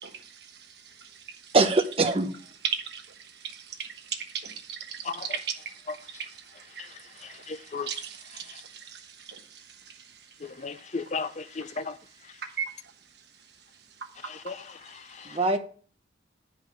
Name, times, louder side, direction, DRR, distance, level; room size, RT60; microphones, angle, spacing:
voice 1, 0.0-0.3 2.6-3.0 3.4-3.9 4.3-5.6 6.1-6.2 6.7-6.9 7.3-7.4 7.9-9.0 9.3-9.4 12.6-12.7, right 7 dB, 60° right, 1.2 m, -35 dB
voice 2, 1.5-2.3 15.3-15.6, right 2 dB, 30° right, 0.8 m, -22 dB
voice 3, 5.0-5.4 5.9-6.0 7.5-7.9 10.4-12.0 14.2-15.4, left 4 dB, 35° left, 0.5 m, -35 dB
8.5 x 5.0 x 5.1 m
head